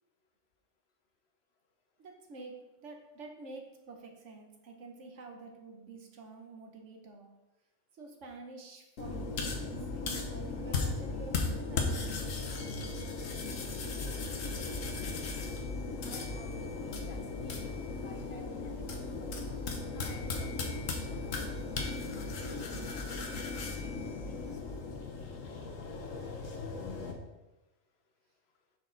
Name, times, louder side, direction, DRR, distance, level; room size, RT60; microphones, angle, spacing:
voice 1, 2.0-7.3 7.9-11.9, right 3 dB, 65° right, 3 dB, 1.3 m, -48 dB
sound 1, 9.0-27.1, left 3 dB, 80° left, 1.3 m, -36 dB
voice 2, 16.0-16.7 17.1-17.8 18.0-20.8 21.1-24.4 24.6-24.8, left 3 dB, 60° left, 5 dB, 1.0 m, -55 dB
6.3 x 5.2 x 3.9 m, 1.0 s
omnidirectional pair, 1.3 m